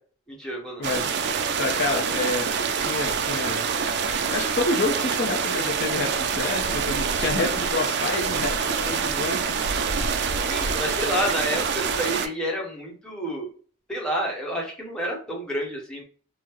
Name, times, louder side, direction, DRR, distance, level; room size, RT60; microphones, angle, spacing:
voice 1, 0.3-0.8 1.9-2.3 10.3-13.5 13.9-16.0, equal, 5° left, -3 dB, 0.9 m, -29 dB
sound 1, 0.8-12.3, right 6 dB, 55° right, 0.4 m, -26 dB
voice 2, 1.6-2.5 2.8-3.6 4.3-9.5 10.5-10.6, left 3 dB, 50° left, 1 dB, 0.6 m, -28 dB
3.6 x 2.0 x 2.9 m, 0.42 s
head